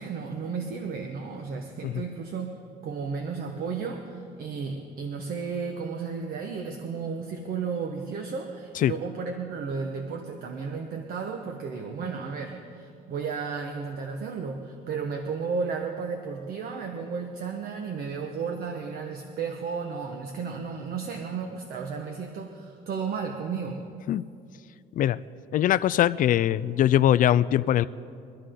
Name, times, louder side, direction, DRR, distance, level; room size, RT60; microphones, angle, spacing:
voice 1, 0.0-2.5 2.8-23.8, right 5 dB, 60° right, 4 dB, 1.3 m, -33 dB
voice 2, 25.5-27.9, left 11 dB, 50° left, 17 dB, 0.4 m, -22 dB
24.0 x 12.5 x 3.8 m, 2.4 s
cardioid pair, 110°, 17 cm